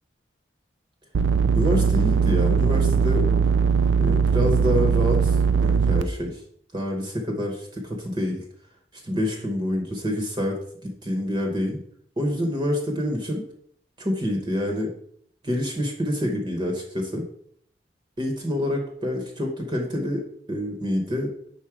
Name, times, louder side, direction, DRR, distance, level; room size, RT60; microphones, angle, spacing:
sound 1, 1.1-6.0, right 6 dB, 85° right, 0.4 m, -20 dB
voice 1, 1.5-3.3 4.0-6.4 6.7-8.4 8.9-11.8 12.2-13.4 14.0-14.9 15.4-17.2 18.2-21.3, left 1 dB, 25° right, 1 dB, 0.9 m, -27 dB
4.9 x 4.1 x 5.8 m, 0.65 s
head